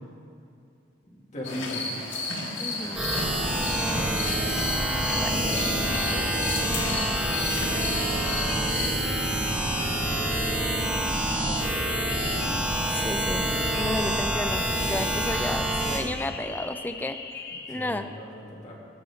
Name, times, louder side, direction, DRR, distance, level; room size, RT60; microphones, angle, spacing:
voice 1, 1.1-1.9 3.9-4.2 5.1-7.3 8.6-11.7 13.7-14.0 17.7-18.8, equal, 40° left, -3 dB, 2.1 m, -40 dB
sound 1, 1.4-8.9, left 2 dB, 85° left, 1.9 m, -32 dB
voice 2, 2.6-3.1 5.1-5.4 5.8-5.9 12.4-13.5 13.8-17.2 17.7-18.1, left 1 dB, 10° left, 8 dB, 0.4 m, -33 dB
sound 2, 2.9-16.0, right 1 dB, 5° right, 1.5 m, -27 dB
sound 3, 5.1-17.9, left 4 dB, 55° left, 0.9 m, -39 dB
21.0 x 7.6 x 3.5 m, 2.5 s
head